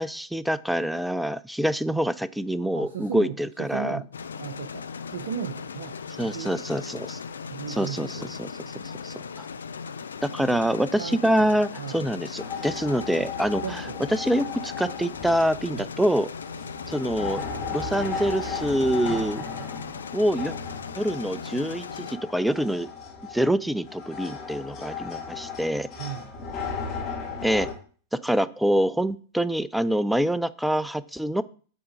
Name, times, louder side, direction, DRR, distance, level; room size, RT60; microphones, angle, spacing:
voice 1, 0.0-4.0 6.2-7.2 7.7-9.5 10.2-13.8 14.1-16.3 16.9-17.4 17.7-19.4 20.1-20.5 21.0-22.9 23.3-25.9 27.4-27.7 28.1-31.4, equal, ahead, 16 dB, 0.3 m, -26 dB
voice 2, 2.7-4.1 4.4-6.5 7.5-8.3 11.0-11.5 11.8-12.0 13.6-14.0 15.7-15.9 26.0-26.3, right 8 dB, 60° right, 5 dB, 0.6 m, -36 dB
sound 1, 4.1-22.2, left 6 dB, 70° left, 0.4 m, -38 dB
sound 2, 12.4-27.7, left 5 dB, 30° left, 2.0 m, -36 dB
7.0 x 3.7 x 4.8 m, 0.41 s
figure-of-eight pair, 90°, 0 cm